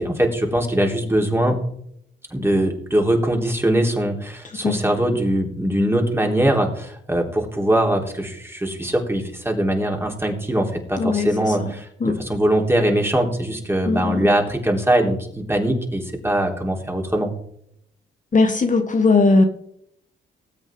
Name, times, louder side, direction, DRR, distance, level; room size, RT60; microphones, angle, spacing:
voice 1, 0.0-1.6 2.3-17.3, right 1 dB, 10° right, 1 dB, 3.6 m, -21 dB
voice 2, 11.0-11.3 12.0-12.2 13.9-14.3 18.3-19.4, left 3 dB, 40° left, 5 dB, 1.4 m, -18 dB
19.5 x 8.1 x 3.7 m, 0.69 s
cardioid pair, 65°, 20 cm